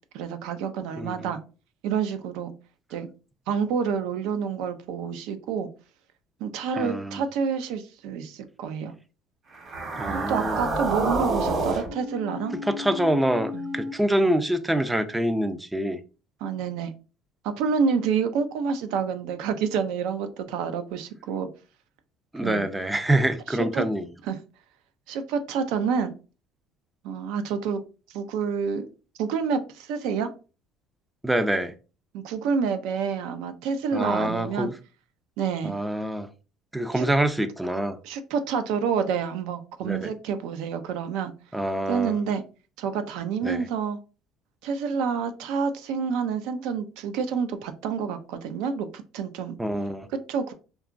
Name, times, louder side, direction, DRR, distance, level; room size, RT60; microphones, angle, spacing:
voice 1, 0.1-1.4 1.8-2.5 2.9-3.1 3.5-5.7 6.4-8.9 10.1-12.5 13.5-13.8 16.4-16.9 17.4-21.5 22.4-22.6 23.5-23.8 24.2-24.4 25.1-26.1 27.0-27.8 28.1-28.9 29.2-30.3 32.1-34.7 35.4-35.7 37.0-37.1 38.0-41.3 41.9-42.4 42.8-44.0 44.6-49.6 50.3-50.5, right 6 dB, 80° right, 0.4 m, -28 dB
voice 2, 6.8-7.2 10.0-10.6 12.7-16.0 22.3-24.1 31.2-31.7 33.9-34.7 35.6-36.3 36.7-38.0 39.8-40.1 41.5-42.2 43.4-43.6 49.6-50.1, right 1 dB, 10° right, 0.3 m, -25 dB
sound 1, 9.5-13.9, right 2 dB, 45° right, 1.1 m, -29 dB
2.9 x 2.3 x 2.4 m
cardioid pair, 115°, 0 cm